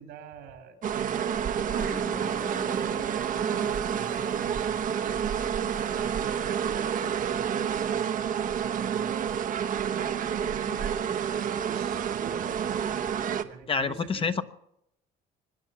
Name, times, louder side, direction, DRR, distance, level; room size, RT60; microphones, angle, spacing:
voice 1, 0.0-5.2 5.8-8.2 8.6-14.3, right 7 dB, 85° right, 5 dB, 3.7 m, -45 dB
sound 1, 0.8-13.4, right 8 dB, 50° right, 1.0 m, -29 dB
sound 2, 1.7-6.6, left 1 dB, 10° left, 0.8 m, -44 dB
voice 2, 13.7-14.4, left 5 dB, 30° left, 9 dB, 1.0 m, -27 dB
25.0 x 9.8 x 5.9 m, 0.78 s
cardioid pair, 110°, 17 cm